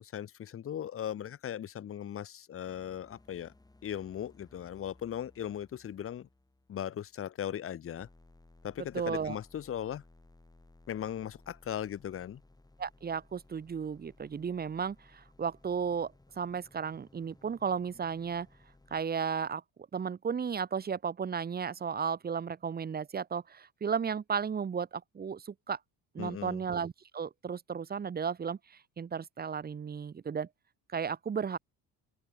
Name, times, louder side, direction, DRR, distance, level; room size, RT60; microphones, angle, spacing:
voice 1, 0.0-3.5 3.8-6.3 6.7-8.1 8.6-10.0 10.9-12.4 26.2-26.6, left 10 dB, 35° left, 0.8 m, -38 dB
sound 1, 2.6-7.6 8.0-19.0, left 2 dB, 10° left, 7.5 m, -61 dB
voice 2, 8.9-9.4 12.8-18.5 18.9-19.6 19.9-25.8 26.1-30.5 30.9-31.6, right 6 dB, 25° right, 0.9 m, -34 dB
open air
cardioid pair, 140°, 39 cm